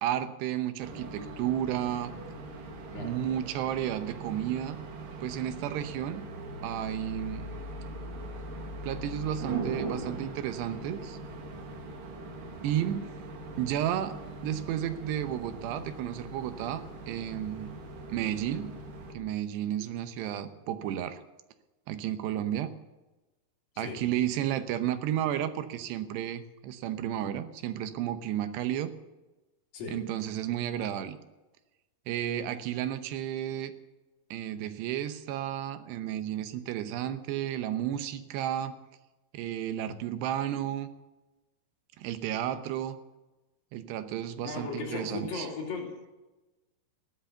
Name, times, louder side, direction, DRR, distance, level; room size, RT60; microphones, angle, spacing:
voice 1, 0.0-2.1 2.9-4.8 5.2-6.3 6.6-7.5 8.8-11.2 12.6-13.1 13.6-17.8 18.1-18.7 19.1-21.2 21.9-22.7 23.8-28.9 29.9-31.2 32.1-33.7 34.3-38.7 39.3-40.9 42.0-43.0 43.7-45.5, right 11 dB, 85° right, 10 dB, 3.1 m, -32 dB
sound 1, 0.8-19.1, right 2 dB, 60° right, 3.3 m, -41 dB
voice 2, 44.4-46.1, left 4 dB, 60° left, -1 dB, 4.6 m, -37 dB
15.5 x 11.5 x 7.0 m, 1.1 s
omnidirectional pair, 4.7 m